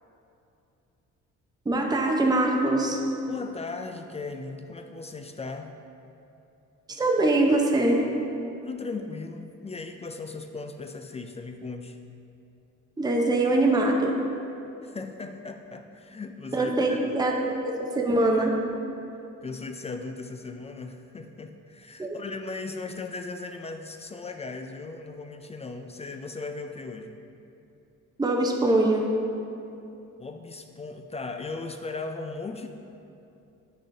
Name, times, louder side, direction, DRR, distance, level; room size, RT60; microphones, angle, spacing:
voice 1, 1.7-3.0 6.9-8.1 13.0-14.1 16.5-18.6 22.0-22.1 28.2-29.1, right 2 dB, 15° right, 0 dB, 0.7 m, -23 dB
voice 2, 3.3-5.7 8.6-12.0 14.8-16.7 19.4-27.2 30.2-32.7, left 3 dB, 20° left, 6 dB, 0.3 m, -37 dB
8.4 x 6.3 x 2.7 m, 2.8 s
cardioid pair, 90°, 30 cm